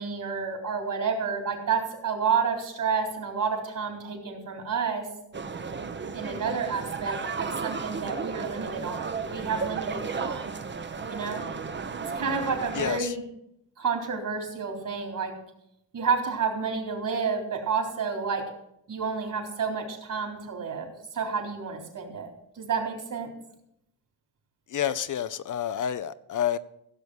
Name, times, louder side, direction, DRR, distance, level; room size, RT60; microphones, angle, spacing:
voice 1, 0.0-5.1 6.1-10.6 11.1-11.4 12.0-13.2 13.8-15.4 15.9-18.5 18.9-22.3 22.6-23.3, right 5 dB, 55° right, 2 dB, 3.8 m, -30 dB
sound 1, 5.3-13.0, right 5 dB, 30° right, 0.9 m, -34 dB
voice 2, 12.7-13.1 24.7-26.6, left 9 dB, 55° left, 13 dB, 0.7 m, -29 dB
15.5 x 7.0 x 6.3 m, 0.78 s
cardioid pair, 85°, 37 cm